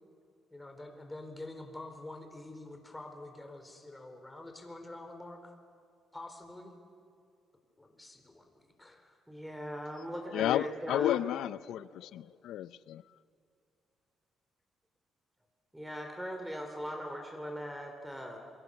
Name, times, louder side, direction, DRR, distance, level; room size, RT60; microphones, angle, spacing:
voice 1, 0.5-5.5 6.1-6.7 7.8-9.2, left 2 dB, 15° left, 5 dB, 4.2 m, -47 dB
voice 2, 9.3-11.2 15.7-18.4, equal, 5° right, 3 dB, 2.9 m, -40 dB
voice 3, 10.3-13.0, left 12 dB, 80° left, 18 dB, 0.5 m, -32 dB
28.0 x 23.0 x 7.1 m, 2.4 s
cardioid pair, 90°, 0 cm